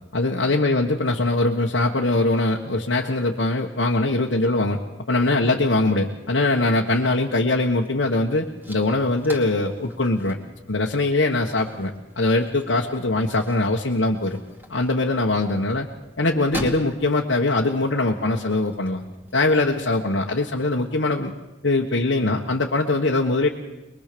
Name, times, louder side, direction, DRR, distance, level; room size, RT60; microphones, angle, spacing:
voice 1, 0.1-4.8 5.1-10.4 10.7-11.9 12.2-14.4 14.7-15.9 16.2-19.0 19.3-21.3 21.6-23.5, left 2 dB, 85° left, -1 dB, 1.4 m, -22 dB
sound 1, 7.7-20.0, equal, 10° right, 2.5 m, -42 dB
22.5 x 22.0 x 6.9 m, 1.0 s
head